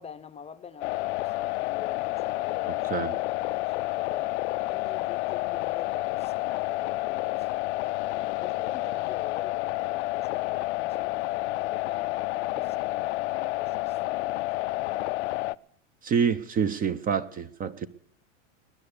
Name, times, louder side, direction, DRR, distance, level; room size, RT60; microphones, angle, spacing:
voice 1, 0.0-3.1 3.4-15.0, left 7 dB, 15° left, 0.7 m, -46 dB
sound 1, 0.8-15.6, left 19 dB, 70° left, 0.5 m, -30 dB
voice 2, 16.0-17.9, right 7 dB, 25° right, 0.6 m, -27 dB
20.5 x 9.6 x 6.7 m
supercardioid pair, 130°, 36 cm